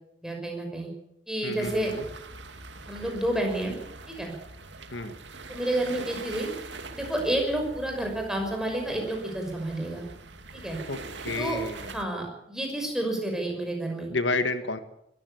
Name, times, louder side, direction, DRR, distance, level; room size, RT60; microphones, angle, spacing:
voice 1, 0.2-0.9 1.3-1.9 2.9-3.8 4.1-4.3 5.5-6.5 6.9-10.0 10.5-10.8 11.4-11.6 11.9-14.1, right 1 dB, 5° right, 1 dB, 6.0 m, -30 dB
voice 2, 1.4-2.0 4.9-5.1 10.9-12.0 14.1-14.8, left 3 dB, 85° left, 9 dB, 1.7 m, -30 dB
sound 1, 1.6-12.0, right 3 dB, 85° right, 2.3 m, -43 dB
21.5 x 14.5 x 8.5 m, 0.78 s
head